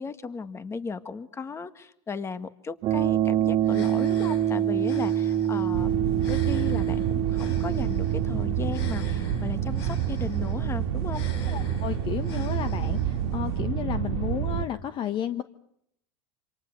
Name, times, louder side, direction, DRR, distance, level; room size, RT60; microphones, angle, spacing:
voice 1, 0.0-6.0 6.3-11.3, left 5 dB, 20° left, 12 dB, 1.7 m, -36 dB
sound 1, 2.8-12.9, right 10 dB, 45° right, 1.8 m, -28 dB
sound 2, 3.6-13.6, left 6 dB, 80° left, 5.0 m, -48 dB
sound 3, 5.7-14.7, right 10 dB, 80° right, 1.9 m, -28 dB
voice 2, 11.5-15.4, left 10 dB, 40° left, 11 dB, 1.2 m, -32 dB
28.0 x 26.5 x 6.7 m, 0.74 s
supercardioid pair, 120°, 13 cm